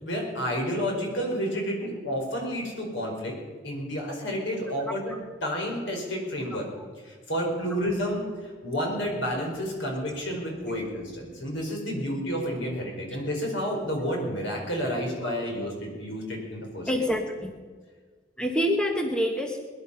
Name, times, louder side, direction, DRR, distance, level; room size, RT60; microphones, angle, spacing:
voice 1, 0.0-3.3 3.6-5.1 5.4-6.7 7.0-16.9, equal, 90° left, 0 dB, 5.0 m, -30 dB
voice 2, 4.9-5.2 6.8-6.9 10.7-10.8 16.9-17.5 18.4-19.6, equal, 5° left, 3 dB, 1.3 m, -27 dB
21.5 x 11.0 x 5.8 m, 1.5 s
head